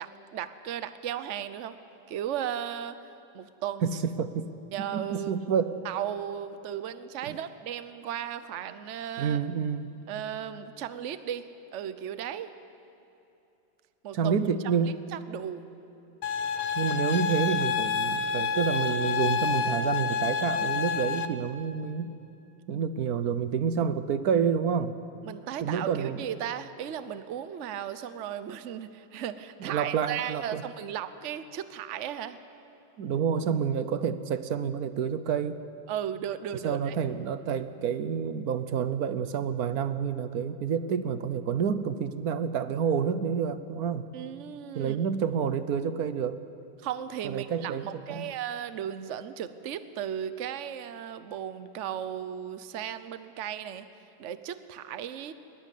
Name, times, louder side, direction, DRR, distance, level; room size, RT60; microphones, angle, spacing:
voice 1, 0.0-1.8 2.1-3.0 3.3-4.0 4.7-5.5 5.8-9.4 10.1-12.5 14.0-14.3 14.6-14.7 15.1-15.6 25.2-32.4 35.9-37.0 44.1-45.0 46.8-53.9 54.2-55.3, right 10 dB, 80° right, 12 dB, 0.6 m, -36 dB
voice 2, 3.8-5.8 7.3-7.4 9.2-9.9 14.1-15.0 16.8-22.1 22.7-25.0 25.6-26.2 29.6-30.6 33.0-35.6 36.6-44.1 44.7-46.4 47.2-48.3, right 7 dB, 60° right, 12 dB, 1.0 m, -29 dB
sound 1, 16.2-21.3, left 6 dB, 75° left, 1.8 m, -28 dB
21.0 x 21.0 x 8.5 m, 2.7 s
omnidirectional pair, 2.4 m